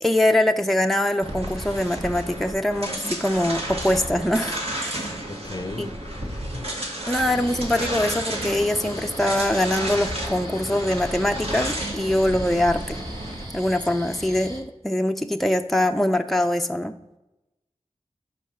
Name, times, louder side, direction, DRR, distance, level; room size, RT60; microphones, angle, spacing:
voice 1, 0.0-5.1 5.8-5.9 6.2-6.3 7.1-13.0 13.5-17.0, left 1 dB, ahead, 5 dB, 0.6 m, -23 dB
sound 1, 1.2-13.4, right 1 dB, 60° right, 2.0 m, -32 dB
voice 2, 5.3-5.9 6.5-6.7, left 2 dB, 35° left, 11 dB, 0.7 m, -35 dB
sound 2, 7.2-14.6, equal, 40° right, 1.6 m, -39 dB
8.1 x 4.6 x 5.7 m, 0.98 s
wide cardioid pair, 45°, 12 cm